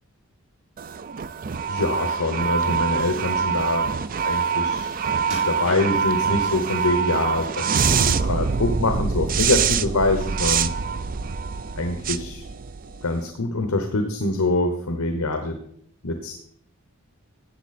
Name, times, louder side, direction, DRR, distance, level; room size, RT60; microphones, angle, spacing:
sound 1, 0.8-13.2, right 6 dB, 40° right, 0.4 m, -25 dB
voice 1, 1.7-3.9 4.2-4.9 5.3-10.7 11.8-12.4 13.0-15.6 16.0-16.3, left 2 dB, 75° left, 6 dB, 1.0 m, -24 dB
sound 2, 5.2-6.3 6.9-7.6 8.0-8.9 9.3-9.5 10.0-10.1, right 2 dB, 65° right, 4.0 m, -40 dB
13.0 x 8.3 x 4.3 m, 0.68 s
head